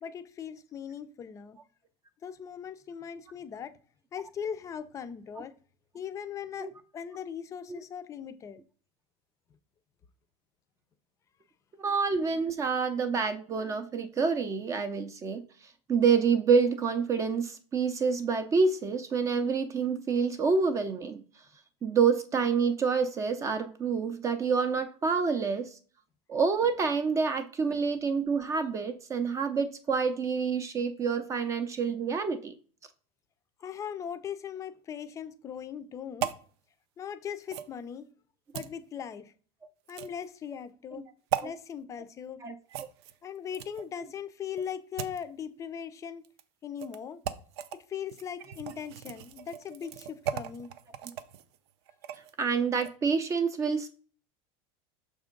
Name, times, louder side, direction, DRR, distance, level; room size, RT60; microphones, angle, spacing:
voice 1, 0.0-1.6 2.2-3.7 4.1-5.5 5.9-8.6 33.6-36.3 37.0-38.1 38.5-39.3 39.9-41.1 41.4-42.4 43.2-46.2 46.6-47.2 47.9-50.7, left 8 dB, 25° left, 0.5 m, -39 dB
voice 2, 11.8-15.4 15.9-21.2 21.8-25.8 26.3-32.5 42.4-42.9 52.4-53.9, right 5 dB, 25° right, 0.5 m, -27 dB
sound 1, 36.2-36.4 37.5-37.7 38.5-38.7 39.9-40.3 41.3-41.5 42.7-43.9 44.6-45.2 46.2-46.4 46.8-47.0 47.2-47.8 48.1-52.3 52.7-52.9, right 10 dB, 85° right, 0.6 m, -37 dB
6.5 x 3.5 x 5.2 m
cardioid pair, 155°, 13 cm